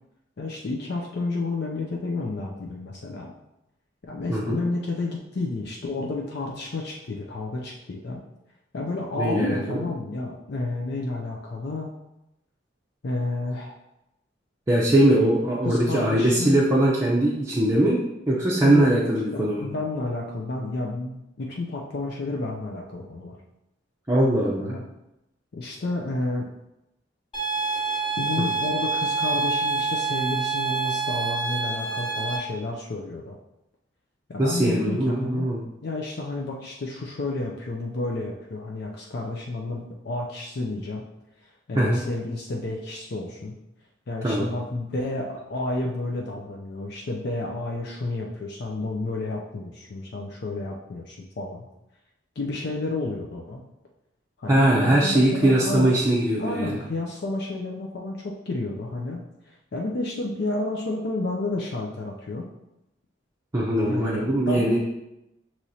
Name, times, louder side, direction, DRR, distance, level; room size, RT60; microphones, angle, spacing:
voice 1, 0.4-3.3 4.0-8.2 8.7-11.9 13.0-13.7 15.6-16.6 18.6-23.4 24.6-24.9 25.5-26.5 28.2-33.4 34.3-35.5 35.8-41.0 41.4-43.5 44.1-51.6 52.4-53.6 54.4-56.0 56.4-62.4 63.9-64.8, left 2 dB, 60° left, -1 dB, 0.5 m, -31 dB
voice 2, 9.2-9.8 14.7-18.0 18.3-19.7 24.1-24.7 28.4-28.5 34.4-35.6 41.8-42.0 44.2-44.5 54.5-56.8 63.5-64.8, right 1 dB, 15° right, -5 dB, 0.6 m, -21 dB
sound 1, 27.3-32.4, right 4 dB, 25° left, 1.1 m, -26 dB
6.2 x 3.0 x 2.7 m, 0.89 s
head